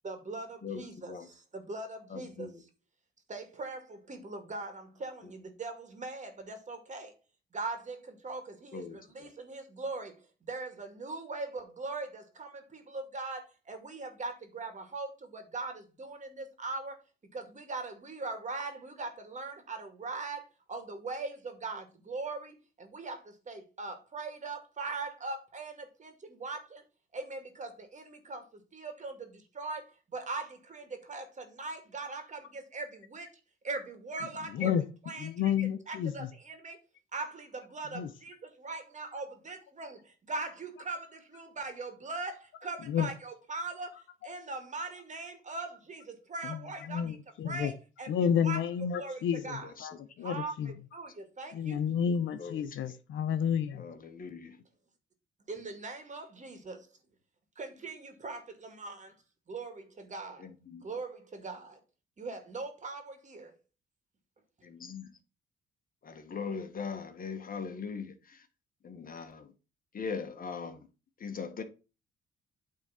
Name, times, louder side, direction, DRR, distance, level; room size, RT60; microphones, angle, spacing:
voice 1, 0.0-2.7 3.3-7.1 7.5-17.0 17.3-26.8 27.1-33.3 33.6-34.7 35.0-35.3 35.9-36.8 37.1-47.2 47.4-48.6 49.0-49.7 50.2-51.8 55.5-56.9 57.6-59.2 59.5-60.5 60.8-61.8 62.2-63.6, right 3 dB, 35° right, 2.2 m, -41 dB
voice 2, 0.6-1.3 2.1-2.5 8.7-9.0 52.4-52.5 53.8-54.5 60.7-60.8 64.8-65.0 66.0-68.1 68.8-69.4 69.9-70.8 71.2-71.6, left 5 dB, 45° left, 1.4 m, -39 dB
voice 3, 34.5-34.8 35.2-36.3 37.9-38.1 42.9-43.1 46.4-47.7 48.1-50.8 51.5-53.9, left 8 dB, 75° left, 0.9 m, -31 dB
8.7 x 3.8 x 5.7 m
cardioid pair, 90°, 20 cm